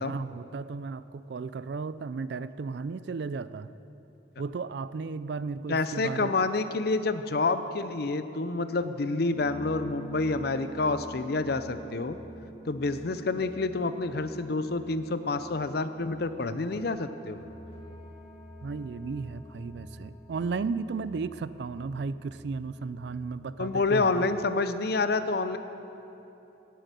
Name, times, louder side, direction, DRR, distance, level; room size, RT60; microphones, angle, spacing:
voice 1, 0.0-3.7 4.4-6.3 18.6-24.3, right 4 dB, 60° right, 15 dB, 0.4 m, -34 dB
voice 2, 5.7-12.2 12.7-17.4 23.6-25.6, left 3 dB, 55° left, 11 dB, 0.6 m, -28 dB
sound 1, 9.3-24.5, right 1 dB, 30° left, 1.3 m, -48 dB
17.5 x 7.6 x 6.8 m, 3.0 s
head